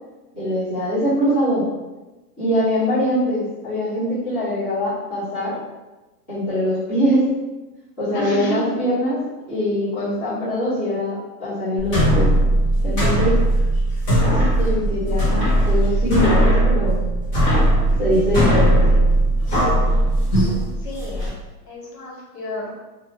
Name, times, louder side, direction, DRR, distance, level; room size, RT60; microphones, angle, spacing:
voice 1, 0.4-1.7 2.4-5.6 6.3-7.3 8.0-9.2 9.5-12.3 12.8-13.4 14.2-17.1 18.0-19.1, equal, 10° left, -17 dB, 0.5 m, -22 dB
voice 2, 8.1-8.6 20.4-21.3 21.7-22.7, equal, 80° left, -3 dB, 1.2 m, -31 dB
sound 1, 11.8-21.3, right 1 dB, 30° left, 0.9 m, -18 dB
2.4 x 2.4 x 3.0 m, 1.1 s
supercardioid pair, 175°, 47 cm